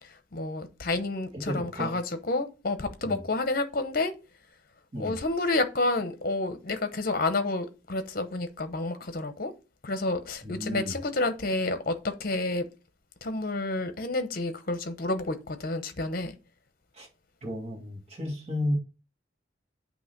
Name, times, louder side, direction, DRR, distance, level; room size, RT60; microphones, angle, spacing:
voice 1, 0.0-4.1 5.0-9.5 9.8-12.7 13.2-16.4, left 2 dB, 45° left, 0.9 m, -30 dB
voice 2, 1.3-2.0 3.0-3.2 4.9-5.2 10.4-11.0 16.9-17.1 17.4-18.8, left 1 dB, 35° right, 1.9 m, -33 dB
8.6 x 2.9 x 5.9 m
head